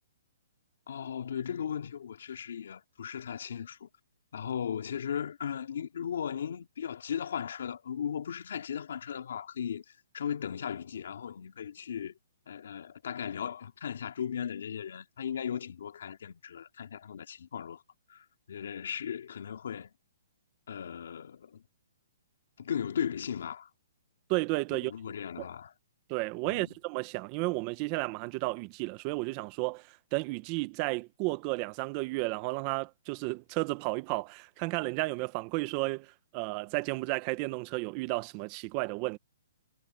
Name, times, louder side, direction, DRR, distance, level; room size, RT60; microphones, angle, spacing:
voice 1, 0.9-3.9 4.3-9.8 10.1-12.1 12.5-17.8 18.1-19.9 20.7-21.6 22.6-23.7 24.7-25.7 26.4-26.7, left 8 dB, 70° left, 2.5 m, -37 dB
voice 2, 24.3-24.9 25.4-25.5 26.1-39.2, right 24 dB, 30° right, 1.1 m, -33 dB
hypercardioid pair, 160°, 0 cm